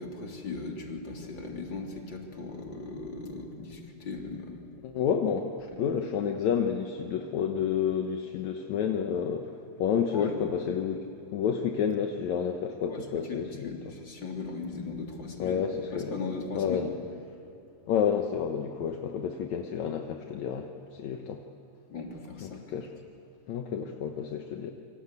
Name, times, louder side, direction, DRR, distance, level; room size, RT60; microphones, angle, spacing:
voice 1, 0.0-4.6 10.1-10.3 12.9-13.0 13.3-15.6 15.9-16.9 21.9-22.6, left 3 dB, 35° left, 0 dB, 3.8 m, -38 dB
voice 2, 4.8-9.5 9.8-11.0 11.3-13.9 15.4-16.2 16.6-16.9 17.9-21.4 22.4-22.9 23.5-24.7, left 7 dB, 70° left, 4 dB, 2.3 m, -30 dB
27.0 x 24.5 x 8.4 m, 2.6 s
omnidirectional pair, 3.5 m